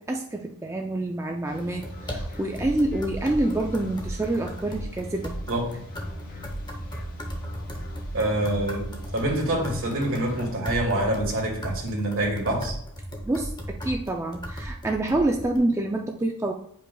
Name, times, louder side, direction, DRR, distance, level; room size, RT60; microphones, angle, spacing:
voice 1, 0.0-5.3 13.2-16.5, right 2 dB, 10° right, 1 dB, 0.3 m, -27 dB
sound 1, 1.4-10.6, left 2 dB, 40° left, 1.1 m, -44 dB
sound 2, 1.6-15.6, equal, 20° left, 0.8 m, -36 dB
voice 2, 8.1-12.7, right 1 dB, 60° right, -1 dB, 2.1 m, -26 dB
8.7 x 5.2 x 2.3 m, 0.67 s
head